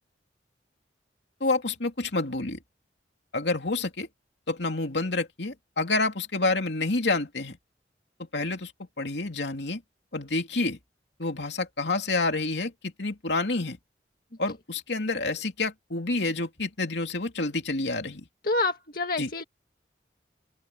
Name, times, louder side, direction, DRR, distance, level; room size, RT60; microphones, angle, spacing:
voice 1, 1.4-2.6 3.3-4.1 4.5-7.6 8.3-8.7 9.0-9.8 10.1-10.8 11.2-13.8 14.4-18.3 19.2-19.3, left 3 dB, 75° left, 2.8 m, -28 dB
voice 2, 18.4-19.4, left 2 dB, 55° left, 1.9 m, -27 dB
open air
head